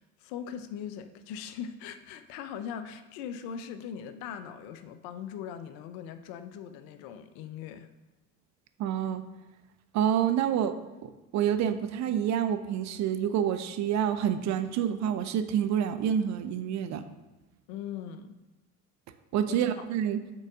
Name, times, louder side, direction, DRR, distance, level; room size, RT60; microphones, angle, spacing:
voice 1, 0.0-7.9 17.7-18.4 19.5-19.7, left 8 dB, 50° left, 11 dB, 0.6 m, -40 dB
voice 2, 8.8-9.2 9.9-10.7 11.0-17.0 19.3-20.2, right 9 dB, 40° right, 9 dB, 0.6 m, -28 dB
6.4 x 3.8 x 6.0 m, 1.1 s
figure-of-eight pair, 60°, 44 cm